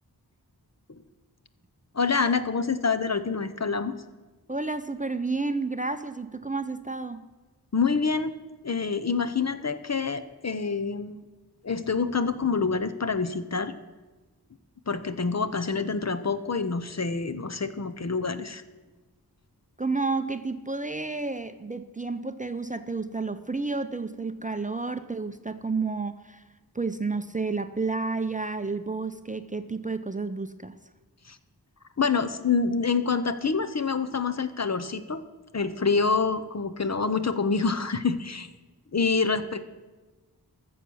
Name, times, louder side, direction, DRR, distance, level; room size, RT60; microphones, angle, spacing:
voice 1, 1.9-4.0 7.7-8.3 8.6-11.2 11.6-13.7 14.9-18.6 31.3-31.4 32.0-35.2 35.5-38.5 38.9-39.6, left 4 dB, 40° left, 11 dB, 0.7 m, -26 dB
voice 2, 4.5-7.2 19.8-26.4 26.7-30.8, right 3 dB, 20° right, 10 dB, 0.5 m, -31 dB
14.0 x 7.1 x 6.2 m, 1.2 s
wide cardioid pair, 65°, 40 cm